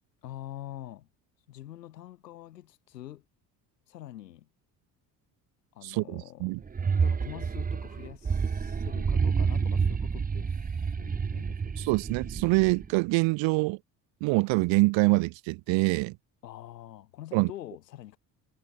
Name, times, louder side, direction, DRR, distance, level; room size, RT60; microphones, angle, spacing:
voice 1, 0.2-1.1 1.5-3.2 3.9-4.5 5.7-6.5 7.0-11.9 16.4-18.2, left 13 dB, 90° left, 4.2 m, -45 dB
voice 2, 5.8-6.6 11.8-13.8 14.2-16.2 17.3-17.5, right 25 dB, 70° right, 2.5 m, -25 dB
sound 1, 6.6-12.9, right 5 dB, 20° right, 0.8 m, -29 dB
hypercardioid pair, 55°, 48 cm